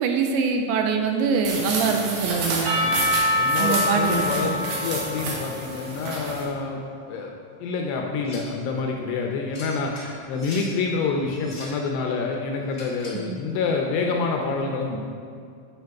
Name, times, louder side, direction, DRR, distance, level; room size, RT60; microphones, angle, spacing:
voice 1, 0.0-2.9 3.6-4.5 13.3-13.4, right 5 dB, 85° right, 4 dB, 2.8 m, -24 dB
sound 1, 1.4-6.4, right 3 dB, 65° right, 3.1 m, -30 dB
Percussion / Church bell, 2.6-6.6, left 1 dB, 40° right, 1.7 m, -26 dB
voice 2, 3.4-6.8 7.1-7.3 7.6-9.9 10.3-15.0, left 4 dB, 80° left, 1 dB, 2.5 m, -27 dB
sound 2, 8.2-8.6 9.5-10.7 11.3-11.8 12.7-13.3, left 1 dB, 65° left, 1.1 m, -41 dB
9.1 x 7.0 x 4.7 m, 2.3 s
omnidirectional pair, 5.3 m